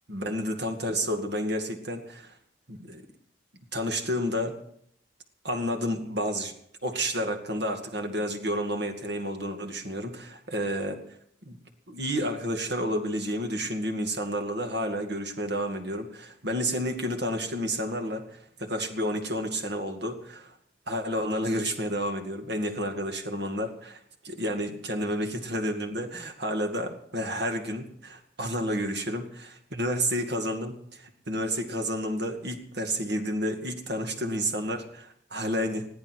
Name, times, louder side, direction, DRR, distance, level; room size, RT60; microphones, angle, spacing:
voice 1, 0.1-2.3 2.7-3.0 3.7-4.6 5.4-6.5 6.8-11.0 11.5-11.6 11.9-20.5 20.9-24.0 24.2-35.9, equal, 55° right, 4 dB, 2.2 m, -30 dB
21.0 x 14.0 x 4.7 m, 0.69 s
head